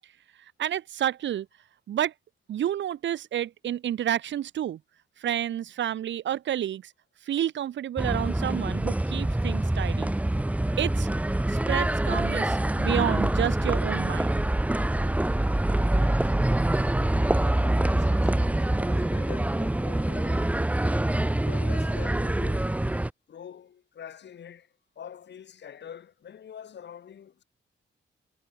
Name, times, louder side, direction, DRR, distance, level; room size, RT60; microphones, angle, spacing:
voice 1, 0.6-1.5 1.9-2.1 2.5-4.8 5.2-6.9 7.2-10.1 10.8-11.1 11.5-14.4, right 11 dB, 70° right, 0.8 m, -30 dB
sound 1, 8.0-23.1, right 1 dB, 5° right, 1.1 m, -25 dB
voice 2, 15.9-16.5 17.0-20.6 21.4-22.8 23.3-27.4, left 8 dB, 65° left, 6.1 m, -45 dB
wide cardioid pair, 145°, 20 cm